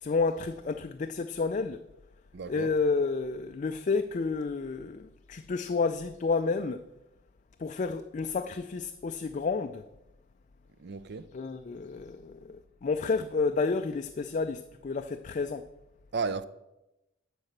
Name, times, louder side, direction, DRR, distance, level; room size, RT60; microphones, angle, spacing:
voice 1, 0.0-1.8 2.5-6.8 7.6-9.8 11.3-15.7, left 4 dB, 40° left, 0.4 m, -30 dB
voice 2, 2.3-2.7 10.8-11.3 16.1-16.4, right 4 dB, 55° right, 0.5 m, -33 dB
11.5 x 4.8 x 6.6 m
head